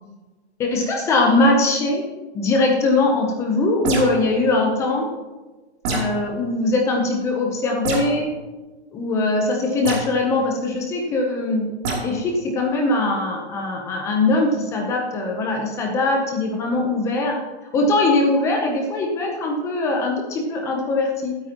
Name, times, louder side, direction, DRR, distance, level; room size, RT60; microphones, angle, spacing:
voice 1, 0.6-2.0 2.3-5.1 5.9-8.3 8.9-11.7 12.0-17.4 17.7-21.4, left 2 dB, 10° left, 1 dB, 0.7 m, -21 dB
sound 1, 3.8-4.3 5.8-6.2 7.8-8.1 9.8-10.1 11.8-12.0, right 2 dB, 25° right, 2.9 m, -25 dB
22.0 x 8.9 x 3.0 m, 1.3 s
hypercardioid pair, 165°, 33 cm